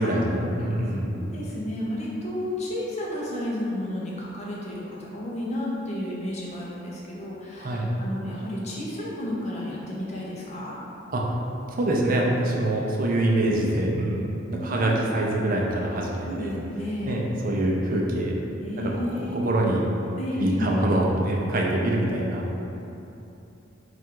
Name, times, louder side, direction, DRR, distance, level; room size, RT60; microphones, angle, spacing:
voice 1, 0.0-1.1 7.6-7.9 11.1-11.4 11.7-16.5 17.1-18.4 19.2-19.9 20.4-22.6, right 1 dB, 45° right, -2 dB, 0.5 m, -25 dB
voice 2, 1.0-10.7 14.5-14.9 16.2-17.2 18.6-19.4 20.1-20.8, left 1 dB, 35° left, -5 dB, 0.7 m, -32 dB
3.5 x 2.5 x 4.4 m, 2.8 s
head